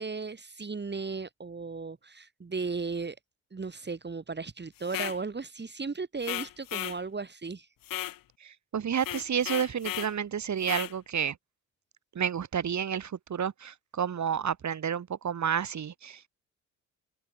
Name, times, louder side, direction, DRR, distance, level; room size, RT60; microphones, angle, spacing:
voice 1, 0.0-3.2 3.5-7.7, right 4 dB, 30° right, 4.5 m, -36 dB
sound 1, 4.8-5.2 6.2-7.0 7.8-8.2 9.0-10.1 10.6-10.9, left 13 dB, 75° left, 6.5 m, -35 dB
voice 2, 8.4-11.4 12.1-16.3, right 8 dB, 55° right, 6.2 m, -30 dB
supercardioid pair, 55°, 34 cm